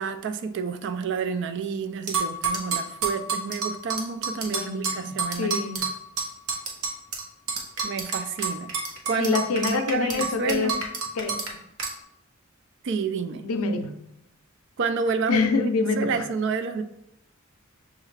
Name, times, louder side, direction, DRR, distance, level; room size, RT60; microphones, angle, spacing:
voice 1, 0.0-5.6 7.8-8.7 9.1-9.4 9.7-10.8 12.8-13.5 14.8-15.5 15.9-16.8, right 5 dB, 55° right, 8 dB, 0.3 m, -29 dB
sound 1, 2.1-7.2 7.5-11.5 11.8-11.9, right 4 dB, 85° right, 0.8 m, -28 dB
voice 2, 4.5-5.9 9.2-10.8 11.2-11.4 13.4-14.0 15.3-16.3, left 4 dB, 90° left, 7 dB, 0.5 m, -26 dB
6.3 x 2.4 x 3.2 m, 0.81 s
head